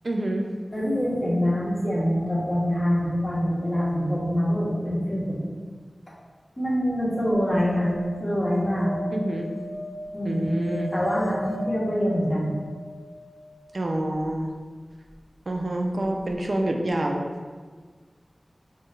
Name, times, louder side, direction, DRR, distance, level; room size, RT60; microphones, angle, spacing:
voice 1, 0.0-0.5 9.1-9.5 10.2-10.9 13.7-14.5 15.5-17.2, right 1 dB, 65° right, 2 dB, 0.3 m, -27 dB
voice 2, 0.7-5.4 6.6-7.9 8.2-8.9 10.1-10.5 10.9-12.5, equal, 40° left, -7 dB, 1.2 m, -25 dB
sound 1, 7.5-13.7 16.0-16.1 16.3-16.4, left 1 dB, 80° left, 0.6 m, -37 dB
4.3 x 2.7 x 2.3 m, 1.5 s
wide cardioid pair, 50°, 0 cm